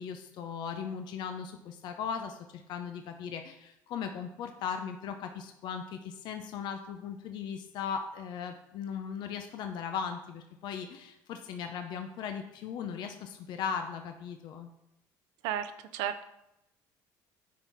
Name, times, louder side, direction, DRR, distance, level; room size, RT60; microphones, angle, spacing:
voice 1, 0.0-14.7, left 7 dB, 65° left, 6 dB, 0.7 m, -38 dB
voice 2, 15.4-16.2, right 10 dB, 85° right, 9 dB, 0.5 m, -33 dB
9.3 x 4.7 x 4.1 m, 0.86 s
supercardioid pair, 100°, 8 cm